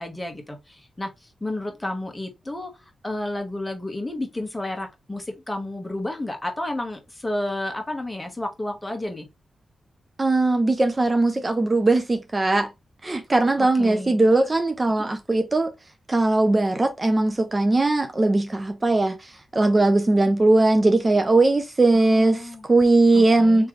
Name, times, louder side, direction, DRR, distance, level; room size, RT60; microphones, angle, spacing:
voice 1, 0.0-2.7 3.0-9.3 13.6-14.2 21.9-22.6 23.1-23.7, left 1 dB, 15° left, 1.2 m, -31 dB
voice 2, 10.2-12.7 13.0-15.7 16.1-23.7, right 2 dB, 30° right, 0.5 m, -19 dB
3.7 x 3.2 x 3.1 m
cardioid pair, 90°, 0 cm